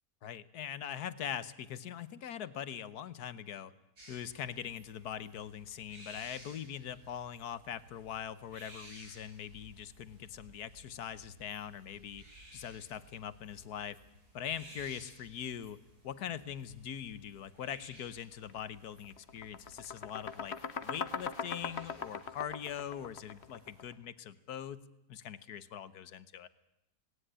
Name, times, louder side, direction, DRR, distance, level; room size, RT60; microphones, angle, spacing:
voice 1, 0.2-3.7 4.1-12.2 12.5-14.0 14.3-26.5, left 9 dB, 80° left, 16 dB, 1.5 m, -42 dB
sound 1, 4.0-23.9, right 1 dB, 90° right, 5.7 m, -58 dB
sound 2, 18.4-18.6 19.0-23.9, left 6 dB, 45° left, 1.2 m, -40 dB
18.0 x 18.0 x 9.9 m, 0.87 s
omnidirectional pair, 1.6 m